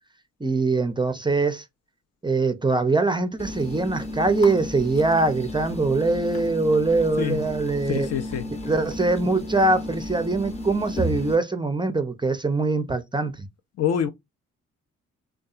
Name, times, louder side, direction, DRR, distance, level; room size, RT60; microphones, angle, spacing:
voice 1, 0.4-1.6 2.2-8.1 8.7-13.5, right 3 dB, 15° right, 0.4 m, -23 dB
sound 1, 3.4-11.3, left 1 dB, 20° left, 0.7 m, -33 dB
voice 2, 7.9-8.5 13.8-14.1, left 8 dB, 55° left, 0.5 m, -25 dB
2.6 x 2.3 x 2.4 m
supercardioid pair, 55°, 31 cm